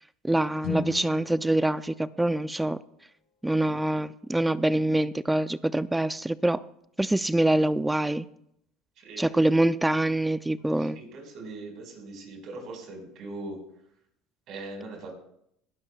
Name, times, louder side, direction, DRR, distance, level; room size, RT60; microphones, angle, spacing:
voice 1, 0.2-2.8 3.4-6.6 7.0-8.3 9.2-11.0, right 1 dB, 10° right, 16 dB, 0.4 m, -25 dB
Guitar, 0.6-3.2, left 6 dB, 60° left, 2.7 m, -39 dB
voice 2, 9.0-9.3 10.9-13.6 14.5-15.1, right 2 dB, 55° right, 2 dB, 4.9 m, -40 dB
22.0 x 11.0 x 2.4 m, 0.75 s
hypercardioid pair, 85°, 0 cm